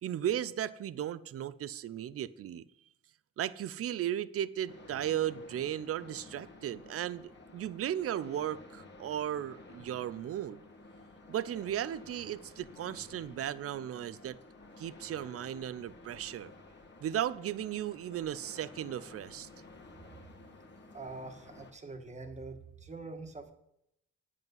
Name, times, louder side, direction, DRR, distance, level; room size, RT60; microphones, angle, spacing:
voice 1, 0.0-2.6 3.4-10.6 11.3-14.4 14.8-16.5 17.0-19.5, right 11 dB, 50° right, 0.5 m, -36 dB
sound 1, 4.7-21.7, left 2 dB, 35° left, 1.6 m, -53 dB
voice 2, 20.9-23.5, right 3 dB, 25° right, 1.5 m, -44 dB
9.1 x 8.2 x 5.4 m
cardioid pair, 90°, 30 cm